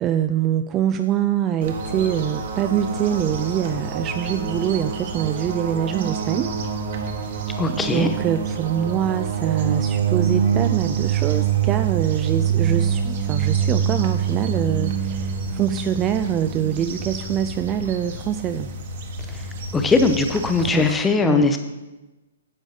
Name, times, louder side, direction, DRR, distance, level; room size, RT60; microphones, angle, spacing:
voice 1, 0.0-6.5 7.2-18.7 20.6-21.5, right 10 dB, 20° right, 8 dB, 0.3 m, -25 dB
sound 1, 1.6-20.9, right 7 dB, 50° right, 1.4 m, -26 dB
voice 2, 7.6-8.1 19.3-19.4 19.7-21.6, left 3 dB, 10° left, 7 dB, 0.6 m, -20 dB
10.0 x 7.2 x 4.0 m, 1.1 s
hypercardioid pair, 155°, 0 cm